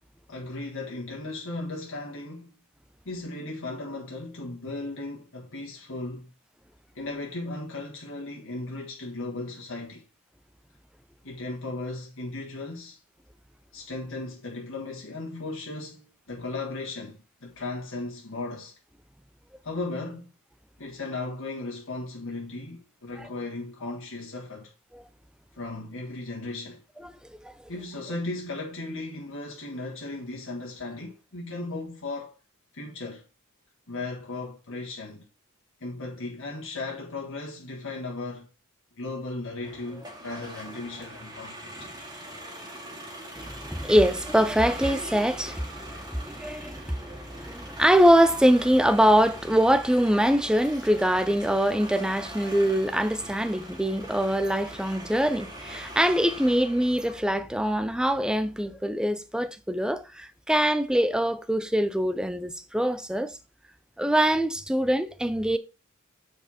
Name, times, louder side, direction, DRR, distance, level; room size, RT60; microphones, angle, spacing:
voice 1, 0.3-2.5 3.0-6.3 6.9-10.0 11.2-13.0 13.7-18.7 19.6-20.3 20.8-24.7 25.6-26.8 27.7-32.4 32.7-33.2 33.9-35.3 35.8-38.5 39.0-41.7, left 2 dB, 65° left, 1.7 m, -36 dB
sound 1, 39.6-57.2, right 1 dB, 20° right, 2.3 m, -42 dB
voice 2, 43.3-63.4 64.0-65.6, equal, 5° right, 0.5 m, -23 dB
8.0 x 4.8 x 4.3 m
head